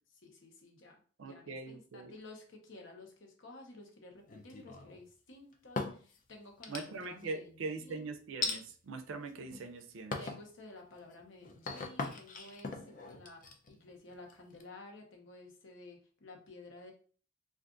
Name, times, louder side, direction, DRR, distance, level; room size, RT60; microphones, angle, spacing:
voice 1, 0.2-8.1 10.2-16.9, left 2 dB, 70° left, 1 dB, 0.9 m, -53 dB
voice 2, 1.2-2.1 6.7-10.2, right 3 dB, 75° right, 9 dB, 0.4 m, -42 dB
sound 1, 4.3-5.0 5.5-6.2 6.6-7.2 8.4-8.6 9.3-9.7 10.1-10.5 10.9-14.6, left 4 dB, 40° left, 0.4 m, -40 dB
2.5 x 2.4 x 3.7 m, 0.42 s
head